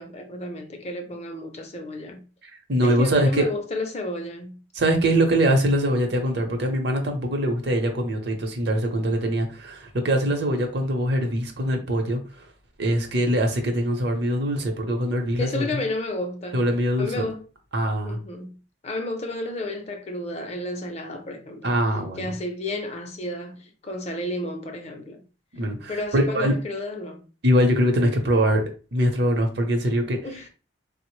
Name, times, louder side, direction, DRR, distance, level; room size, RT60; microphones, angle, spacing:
voice 1, 0.0-2.3 2.8-4.6 15.4-16.7 17.0-17.5 18.0-21.8 22.2-25.2 25.9-27.3 30.2-30.5, left 2 dB, 35° left, 0.5 m, -32 dB
voice 2, 2.7-3.5 4.7-12.5 12.8-15.7 16.5-17.3 17.7-18.2 21.6-22.3 25.5-26.5 27.4-28.6 28.9-30.2, equal, 60° right, 0.7 m, -23 dB
3.6 x 2.0 x 3.1 m
head